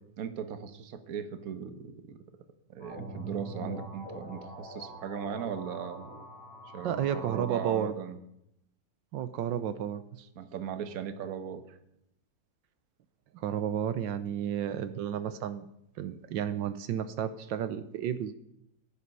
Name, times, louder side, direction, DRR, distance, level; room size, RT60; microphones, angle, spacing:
voice 1, 0.2-2.2 2.7-6.1 6.7-8.2 10.4-11.8, right 8 dB, 55° right, 9 dB, 1.5 m, -38 dB
sound 1, 2.8-7.8, right 1 dB, 70° left, 5.8 m, -43 dB
voice 2, 6.8-7.9 9.1-10.3 13.3-15.7 16.0-18.3, right 9 dB, 85° right, 12 dB, 1.5 m, -32 dB
16.5 x 11.0 x 5.5 m, 0.81 s
omnidirectional pair, 2.0 m